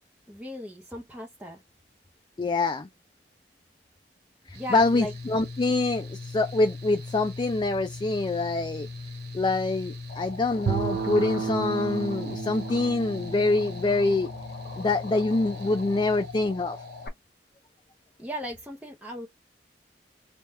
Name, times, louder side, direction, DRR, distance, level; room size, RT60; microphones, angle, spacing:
voice 1, 0.3-1.6 4.5-5.1 18.2-19.3, left 1 dB, 5° right, 0.7 m, -36 dB
voice 2, 2.4-2.9 4.5-8.9 9.3-14.3 14.8-16.8, left 2 dB, 25° left, 0.4 m, -25 dB
Mechanical fan, 4.5-17.1, left 3 dB, 65° right, 1.4 m, -40 dB
sound 1, 10.1-17.1, left 3 dB, 60° left, 1.2 m, -42 dB
Bowed string instrument, 10.7-14.9, right 6 dB, 80° right, 0.6 m, -33 dB
3.4 x 2.3 x 4.1 m
head